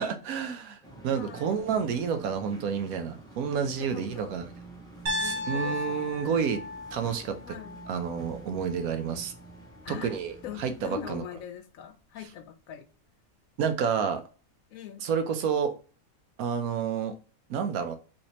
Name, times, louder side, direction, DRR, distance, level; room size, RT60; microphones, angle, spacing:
voice 1, 0.0-4.4 5.2-6.6 6.9-7.6 7.9-9.3 9.9-11.2 13.6-14.2 15.0-15.7 16.4-17.2 17.5-18.0, right 7 dB, 85° right, 1.1 m, -29 dB
sound 1, 0.8-11.2, right 2 dB, 5° left, 0.5 m, -48 dB
voice 2, 1.1-1.7 3.5-4.4 5.2-6.6 7.5-7.8 9.8-10.2 10.4-12.9 14.7-15.1, left 9 dB, 75° left, 1.0 m, -42 dB
Piano, 5.1-9.1, left 1 dB, 55° right, 0.9 m, -36 dB
3.3 x 2.8 x 2.9 m
omnidirectional pair, 1.5 m